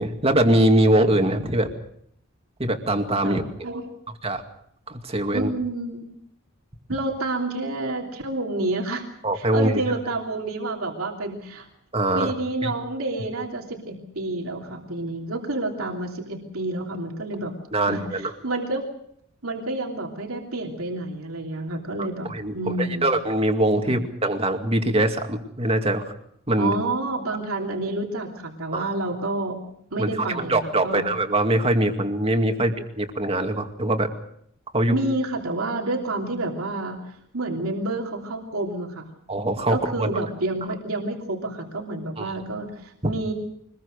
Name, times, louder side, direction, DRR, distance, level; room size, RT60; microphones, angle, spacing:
voice 1, 0.0-1.7 2.6-3.4 4.2-4.4 4.9-5.5 9.2-9.8 11.9-12.3 12.6-12.7 17.7-18.3 22.3-26.1 26.5-26.7 28.7-28.8 30.0-34.1 34.7-35.0 39.3-40.1 42.2-42.3, right 1 dB, 30° right, 5 dB, 2.3 m, -22 dB
voice 2, 5.3-6.1 6.9-9.0 9.3-11.7 12.1-17.5 17.9-18.8 19.4-22.3 22.5-23.1 23.8-24.0 26.6-29.6 29.9-31.0 32.5-32.6 34.9-39.0 39.7-43.3, right 2 dB, 80° right, 1 dB, 3.1 m, -29 dB
24.5 x 21.0 x 6.6 m, 0.71 s
head